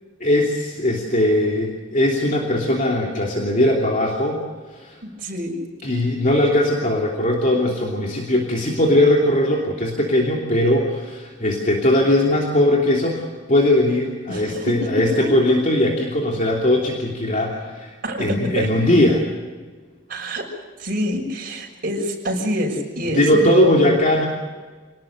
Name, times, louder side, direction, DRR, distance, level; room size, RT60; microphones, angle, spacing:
voice 1, 0.2-4.4 4.7-5.0 5.8-19.3 23.1-24.3, left 1 dB, 40° left, -1 dB, 3.0 m, -19 dB
voice 2, 5.0-5.6 14.3-15.4 18.0-18.7 20.1-20.5 20.8-23.9, equal, 50° right, 0 dB, 6.3 m, -26 dB
27.0 x 19.0 x 6.7 m, 1.4 s
head